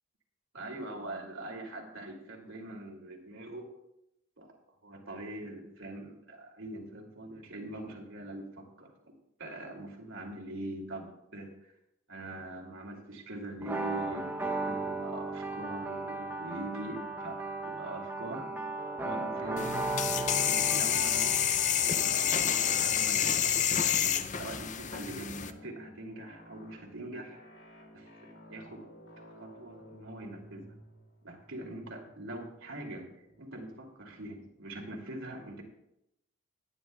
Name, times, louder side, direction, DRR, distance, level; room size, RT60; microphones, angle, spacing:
voice 1, 0.5-3.7 4.4-11.7 12.1-14.4 14.7-18.4 19.0-19.8 20.5-23.4 24.0-27.4 27.9-28.9 29.3-30.7 31.2-35.6, right 1 dB, 80° right, 1 dB, 2.6 m, -43 dB
sound 1, 13.6-23.2, right 3 dB, 10° right, 0.8 m, -36 dB
sound 2, 18.2-34.7, equal, 65° left, 2.5 m, -54 dB
sound 3, 19.6-25.5, left 9 dB, 35° left, 0.5 m, -28 dB
18.5 x 10.5 x 2.3 m, 0.81 s
head